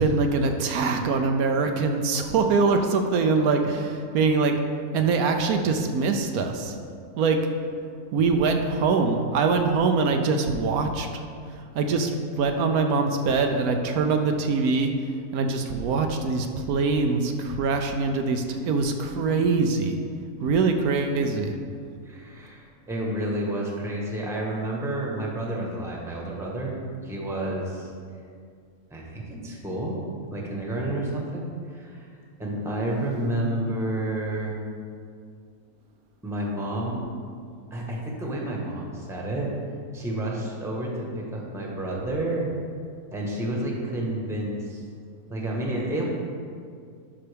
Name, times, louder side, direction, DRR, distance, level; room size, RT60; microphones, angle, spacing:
voice 1, 0.0-4.5 4.9-6.7 7.2-7.5 8.1-11.1 11.7-14.9 15.3-20.0 20.4-21.5, right 4 dB, 80° right, 5 dB, 1.1 m, -23 dB
voice 2, 21.1-21.6 22.0-26.7 27.0-27.9 28.9-30.0 30.3-32.1 32.4-34.5 36.2-37.0 37.7-39.5 39.9-42.5 43.1-44.8 45.3-46.1, right 1 dB, ahead, -2 dB, 1.0 m, -30 dB
11.0 x 5.7 x 3.4 m, 2.2 s
omnidirectional pair, 1.6 m